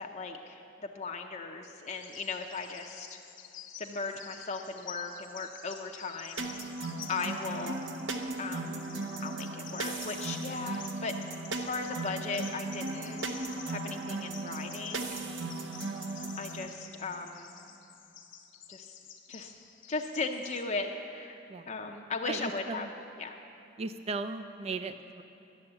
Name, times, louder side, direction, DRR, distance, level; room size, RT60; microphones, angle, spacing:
voice 1, 0.0-3.1 3.8-6.5 7.1-7.8 8.4-8.8 9.2-11.1 11.5-13.3 13.7-15.2 16.4-17.6 18.7-19.0 19.3-19.6 19.9-21.4 21.7-22.9 23.2-23.4, left 4 dB, 40° left, 3 dB, 0.6 m, -37 dB
Bird vocalization bird call bird song, 1.9-20.6, left 8 dB, 80° left, 1.0 m, -50 dB
sound 1, 6.4-16.7, right 3 dB, 75° right, 0.9 m, -37 dB
voice 2, 22.3-22.9 23.8-25.2, right 3 dB, 35° right, 10 dB, 0.4 m, -37 dB
12.0 x 7.0 x 8.8 m, 3.0 s
head